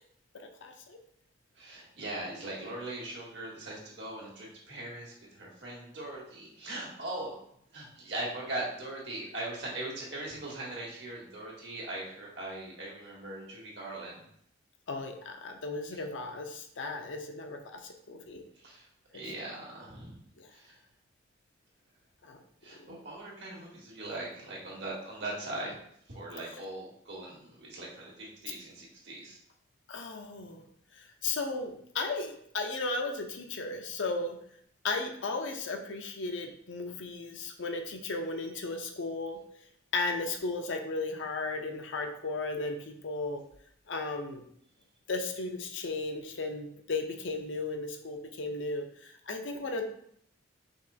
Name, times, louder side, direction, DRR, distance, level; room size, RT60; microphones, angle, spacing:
voice 1, 0.3-1.0 14.9-18.4 19.1-19.3 20.4-20.5 22.3-22.4 22.9-23.0 29.9-30.6 31.2-34.4 34.8-39.4 39.9-43.4 43.9-44.4 45.1-49.9, left 3 dB, 80° left, 4 dB, 0.6 m, -35 dB
voice 2, 1.6-7.4 7.7-14.2 18.6-18.8 19.1-20.1 20.5-20.7 22.6-25.7 26.1-29.4, right 2 dB, 65° right, -3 dB, 1.5 m, -40 dB
5.2 x 3.1 x 2.7 m, 0.68 s
head